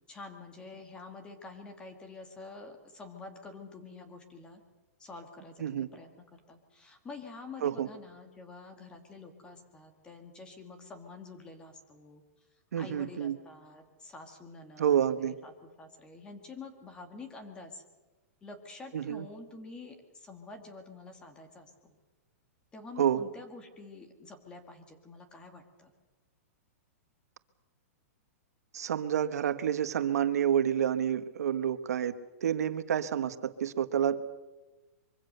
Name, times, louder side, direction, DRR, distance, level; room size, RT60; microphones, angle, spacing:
voice 1, 0.1-4.6 5.0-12.2 12.8-17.8 18.4-21.9 22.7-25.9, left 3 dB, 10° left, 6 dB, 2.0 m, -48 dB
voice 2, 12.7-13.4 14.8-15.3 18.9-19.3 23.0-23.2 28.7-32.1 32.4-34.3, right 9 dB, 80° right, 11 dB, 1.4 m, -29 dB
24.0 x 23.5 x 6.8 m, 1.2 s
hypercardioid pair, 170°, 8 cm